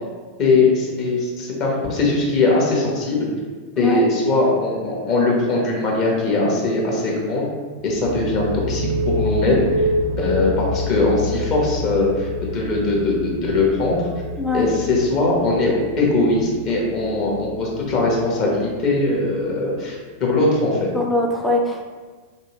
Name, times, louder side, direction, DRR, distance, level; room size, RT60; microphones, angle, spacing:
voice 1, 0.4-3.2 3.8-7.5 7.8-9.9 10.2-14.1 14.5-20.9, left 2 dB, 40° left, -3 dB, 0.8 m, -20 dB
sound 1, 7.8-19.3, left 1 dB, 60° right, 0.4 m, -27 dB
voice 2, 14.4-14.7 20.9-21.8, left 2 dB, 10° left, 1 dB, 0.4 m, -21 dB
3.0 x 2.7 x 3.0 m, 1.4 s
figure-of-eight pair, 90°, 0 cm